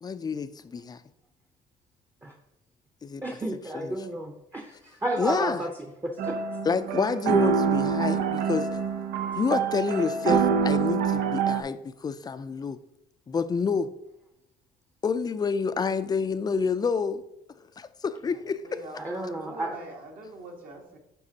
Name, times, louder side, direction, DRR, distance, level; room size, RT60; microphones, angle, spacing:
voice 1, 0.0-1.0 3.0-3.2 3.7-4.0 5.2-5.6 6.6-8.7 9.4-12.8 13.3-13.9 15.0-17.2 17.8-18.8, left 5 dB, 25° left, 0.4 m, -28 dB
voice 2, 3.2-6.4 9.9-10.0 19.0-19.8, right 1 dB, 15° right, 0.6 m, -32 dB
sound 1, 6.2-11.6, right 6 dB, 90° right, 0.6 m, -26 dB
voice 3, 18.3-21.0, right 2 dB, 60° right, 1.4 m, -43 dB
9.9 x 4.0 x 2.8 m
cardioid pair, 110°, 17 cm